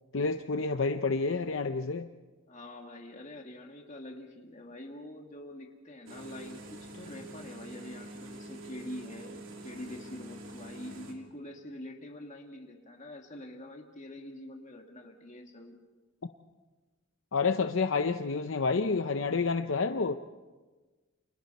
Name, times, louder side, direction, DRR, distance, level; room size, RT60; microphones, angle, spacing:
voice 1, 0.1-2.1 17.3-20.1, left 4 dB, 65° left, 8 dB, 0.7 m, -29 dB
voice 2, 2.5-15.8, left 1 dB, 35° left, 2 dB, 2.2 m, -45 dB
sound 1, 6.1-11.1, right 1 dB, 70° right, 2.9 m, -46 dB
30.0 x 26.5 x 4.2 m, 1.3 s
head